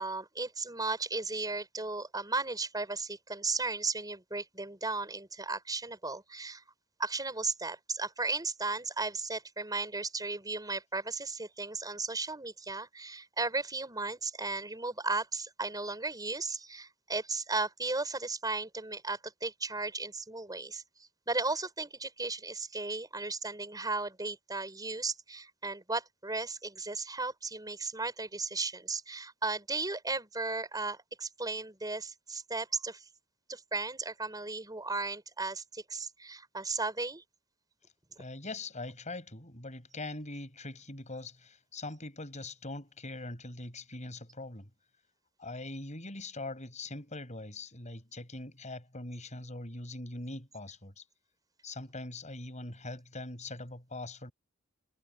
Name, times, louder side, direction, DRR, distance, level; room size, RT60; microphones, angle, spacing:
voice 1, 0.0-6.6 7.0-33.1 33.5-37.2, right 3 dB, 20° right, 6.3 m, -35 dB
voice 2, 38.2-44.7 45.4-51.0 51.6-54.3, left 2 dB, 35° left, 7.0 m, -42 dB
head